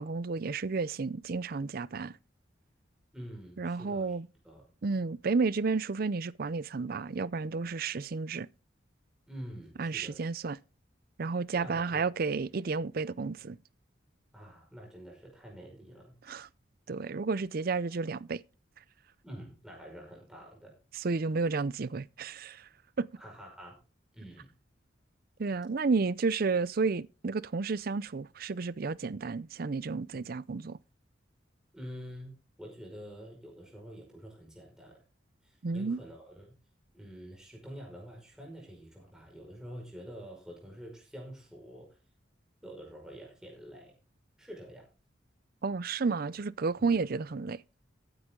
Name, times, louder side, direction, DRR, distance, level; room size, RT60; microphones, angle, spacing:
voice 1, 0.0-2.1 3.6-4.3 4.8-8.5 9.8-10.6 11.2-13.6 16.3-16.5 16.9-18.4 20.9-22.7 23.0-23.1 25.4-30.8 35.6-36.0 45.6-47.6, right 4 dB, 50° right, 0.5 m, -31 dB
voice 2, 3.1-4.2 4.4-4.7 9.3-10.3 11.5-12.1 14.3-16.1 19.2-20.7 23.2-23.7 24.1-24.5 31.7-32.3 32.6-35.0 35.4-36.4 36.9-41.9 42.6-43.9 44.4-44.9 46.8-46.9, equal, 5° right, 5.2 m, -47 dB
14.5 x 9.8 x 3.7 m
head